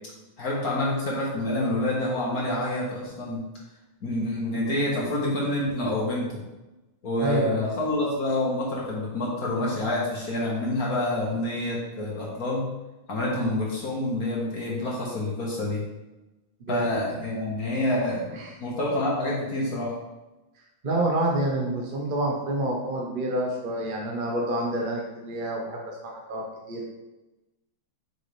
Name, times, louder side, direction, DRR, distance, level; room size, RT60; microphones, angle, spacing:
voice 1, 0.4-3.4 4.0-6.4 7.0-12.7 13.1-15.8 16.7-18.3 18.6-19.9, left 1 dB, 45° left, -4 dB, 1.9 m, -27 dB
voice 2, 7.2-7.7 13.3-13.5 16.7-16.9 18.3-18.5 20.8-26.9, right 1 dB, 45° right, -1 dB, 0.7 m, -28 dB
6.5 x 5.5 x 3.3 m, 1.0 s
omnidirectional pair, 2.3 m